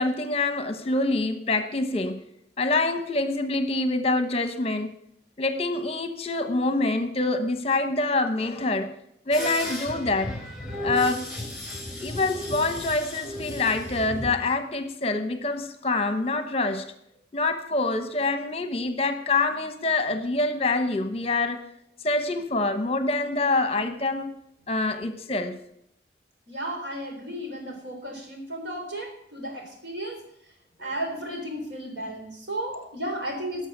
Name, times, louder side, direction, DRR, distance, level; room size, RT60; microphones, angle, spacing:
voice 1, 0.0-2.2 2.6-4.9 5.4-8.9 9.3-10.3 10.8-11.3 12.0-16.9 17.3-21.6 22.0-24.4 24.7-25.6 30.8-30.9, left 2 dB, 35° left, 8 dB, 1.0 m, -26 dB
sound 1, 9.3-14.3, left 1 dB, ahead, 3.0 m, -34 dB
voice 2, 26.5-30.2 30.8-33.7, right 1 dB, 75° right, 2 dB, 3.7 m, -34 dB
12.0 x 6.5 x 7.9 m, 0.73 s
head